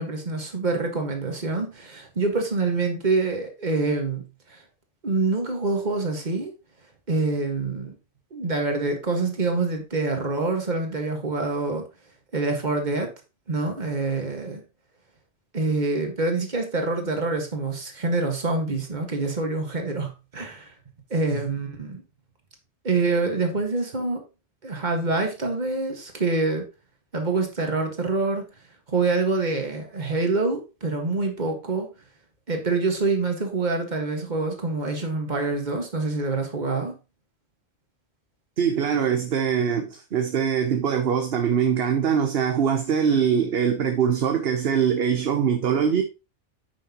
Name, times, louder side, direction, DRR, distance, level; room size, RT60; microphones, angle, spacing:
voice 1, 0.0-4.2 4.5-4.6 5.0-6.5 7.1-7.9 8.3-11.8 12.3-13.1 13.5-14.6 15.5-20.7 21.1-22.0 22.8-24.2 24.6-26.7 27.1-28.4 28.9-31.9 32.5-36.9, right 3 dB, 35° right, 1.8 m, -26 dB
voice 2, 38.6-46.0, right 7 dB, 55° right, 1.0 m, -23 dB
9.6 x 6.4 x 3.0 m
omnidirectional pair, 1.3 m